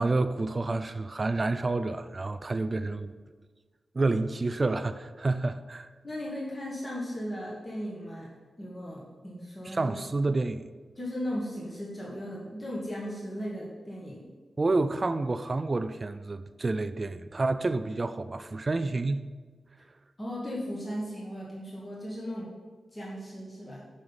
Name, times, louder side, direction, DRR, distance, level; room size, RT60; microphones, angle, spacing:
voice 1, 0.0-3.1 3.9-5.9 9.6-10.6 14.6-19.2, right 3 dB, 25° right, 10 dB, 0.3 m, -29 dB
voice 2, 6.0-8.3 8.6-9.9 11.0-14.2 20.2-22.5 22.9-23.8, equal, 20° left, -6 dB, 1.5 m, -36 dB
7.9 x 5.5 x 7.0 m, 1.4 s
wide cardioid pair, 175°, 0 cm